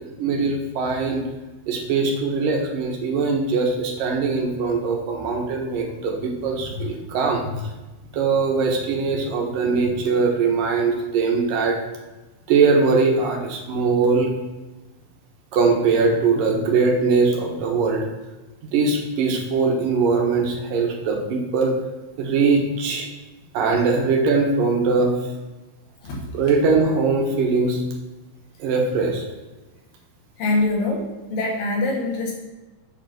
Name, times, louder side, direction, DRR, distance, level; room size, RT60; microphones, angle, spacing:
voice 1, 0.2-1.2 1.7-7.5 8.1-11.8 12.5-14.3 15.5-18.1 18.7-21.7 22.2-23.1 23.5-25.1 26.3-27.8 28.6-29.2, right 4 dB, 75° right, 1 dB, 2.9 m, -21 dB
voice 2, 30.4-32.4, left 2 dB, 75° left, -2 dB, 3.8 m, -24 dB
8.0 x 5.8 x 5.8 m, 1.1 s
omnidirectional pair, 4.0 m